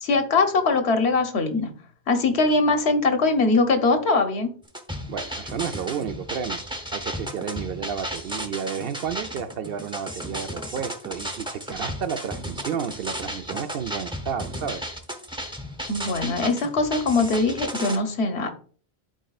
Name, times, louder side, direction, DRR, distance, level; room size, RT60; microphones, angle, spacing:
voice 1, 0.0-1.7 2.1-4.5 15.9-18.5, left 3 dB, 85° left, 1.2 m, -22 dB
Classic Break Mash Mix, 4.7-18.0, equal, 5° right, 0.8 m, -34 dB
voice 2, 5.1-6.6 6.9-14.9, right 7 dB, 65° right, 0.8 m, -31 dB
11.5 x 4.4 x 2.4 m
omnidirectional pair, 1.1 m